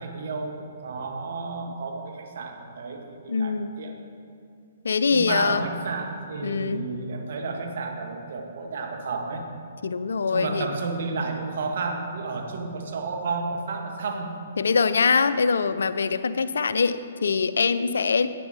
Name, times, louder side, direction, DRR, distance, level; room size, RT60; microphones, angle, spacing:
voice 1, 0.0-3.9 5.1-9.4 10.3-14.4, right 4 dB, 60° right, 3 dB, 1.4 m, -31 dB
voice 2, 3.3-3.7 4.8-5.6 6.4-6.8 9.8-10.7 14.6-18.3, left 5 dB, 75° left, 13 dB, 0.4 m, -23 dB
10.0 x 8.9 x 4.0 m, 2.4 s
figure-of-eight pair, 130°, 0 cm